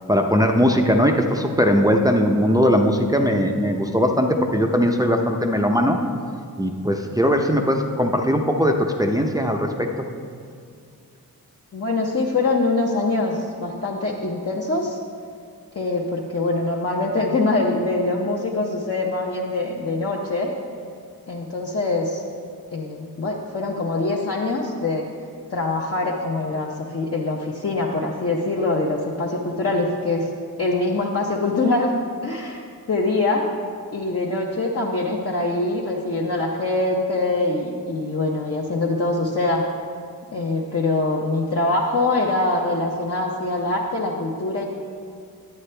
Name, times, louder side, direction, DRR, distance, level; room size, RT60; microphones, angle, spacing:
voice 1, 0.1-6.0 6.6-9.9, equal, 10° right, 2 dB, 0.5 m, -19 dB
voice 2, 11.7-15.0 15.8-20.5 21.3-22.2 22.7-25.0 25.5-30.3 30.6-31.9 32.2-32.6 32.9-33.4 33.9-39.6 40.3-44.6, left 2 dB, 40° left, -3 dB, 0.7 m, -23 dB
9.7 x 8.5 x 3.3 m, 2.2 s
wide cardioid pair, 110°, 36 cm